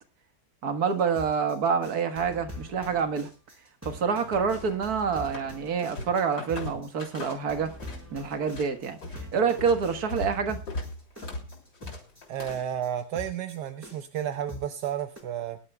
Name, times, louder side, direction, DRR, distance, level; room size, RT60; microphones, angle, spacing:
voice 1, 0.6-3.3 3.8-7.7 8.1-10.6, right 6 dB, 65° right, 8 dB, 1.9 m, -27 dB
sound 1, 1.0-15.2, left 1 dB, 10° right, 4.1 m, -44 dB
sound 2, 4.5-5.5 5.8-8.0 8.3-12.7, left 2 dB, 80° left, 3.8 m, -39 dB
voice 2, 12.3-15.6, right 10 dB, 80° right, 9 dB, 1.4 m, -32 dB
22.5 x 11.5 x 2.2 m, 0.32 s
omnidirectional pair, 1.8 m